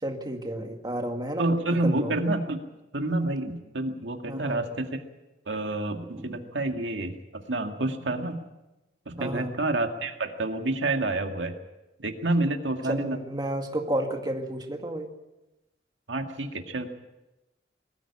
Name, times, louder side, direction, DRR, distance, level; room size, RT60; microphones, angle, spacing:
voice 1, 0.0-1.5 1.8-2.2 4.3-4.6 6.2-6.4 9.2-9.5 12.8-15.1, right 1 dB, 25° right, 3 dB, 2.1 m, -31 dB
voice 2, 1.4-2.6 2.9-5.0 5.5-8.4 9.1-11.5 12.0-13.2 16.1-16.9, right 2 dB, 90° right, 4 dB, 2.0 m, -28 dB
21.5 x 14.5 x 8.6 m, 0.99 s
head